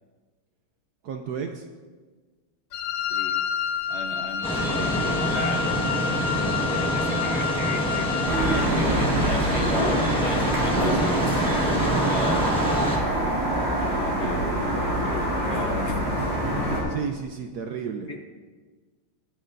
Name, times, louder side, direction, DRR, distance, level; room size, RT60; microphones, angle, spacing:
voice 1, 1.0-1.7 10.3-10.6 11.8-12.4 16.9-18.1, right 6 dB, 70° right, 4 dB, 1.0 m, -33 dB
Wind instrument woodwind instrument, 2.7-8.7, left 8 dB, 85° left, 1.7 m, -29 dB
voice 2, 3.9-11.4 12.0-13.2 13.9-16.1 18.1-18.2, left 2 dB, 60° left, 3 dB, 0.7 m, -36 dB
sound 1, 4.4-13.0, right 1 dB, 5° left, 1.2 m, -26 dB
sound 2, 8.3-16.8, right 1 dB, 30° right, 3.8 m, -25 dB
20.5 x 8.5 x 2.6 m, 1.4 s
omnidirectional pair, 2.2 m